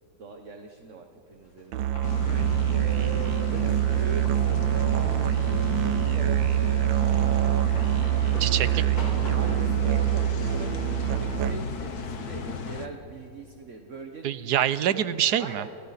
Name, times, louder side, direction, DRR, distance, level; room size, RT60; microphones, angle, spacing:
voice 1, 0.2-1.9 2.7-8.5 9.3-10.8 11.1-14.4 14.9-15.1 15.4-15.7, right 4 dB, 45° right, 4 dB, 1.5 m, -42 dB
sound 1, 1.3-11.8, equal, 80° left, 5.7 m, -44 dB
Musical instrument, 1.7-11.9, right 13 dB, 90° right, 1.5 m, -25 dB
sound 2, 2.0-12.9, left 6 dB, 55° left, 1.6 m, -35 dB
voice 2, 8.4-9.1 14.2-15.7, right 10 dB, 65° right, 14 dB, 1.2 m, -26 dB
30.0 x 29.0 x 4.2 m, 2.9 s
omnidirectional pair, 2.0 m